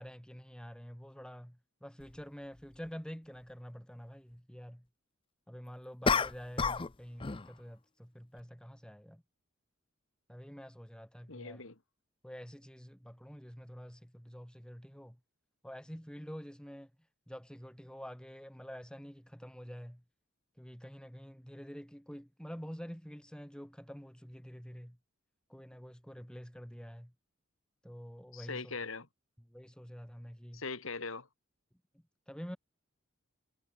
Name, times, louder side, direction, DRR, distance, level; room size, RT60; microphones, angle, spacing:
voice 1, 0.0-4.9 5.5-9.2 10.3-11.7 12.2-15.2 15.6-16.9 17.3-20.0 20.6-25.0 25.5-27.1 27.8-28.7 29.5-30.6 32.3-32.6, equal, 5° left, 2.6 m, -47 dB
sound 1, 2.0-2.1 6.0-6.9 7.2-7.5, left 5 dB, 25° left, 0.6 m, -30 dB
voice 2, 11.3-11.8 28.3-29.1 30.5-31.3, left 4 dB, 80° left, 2.4 m, -41 dB
head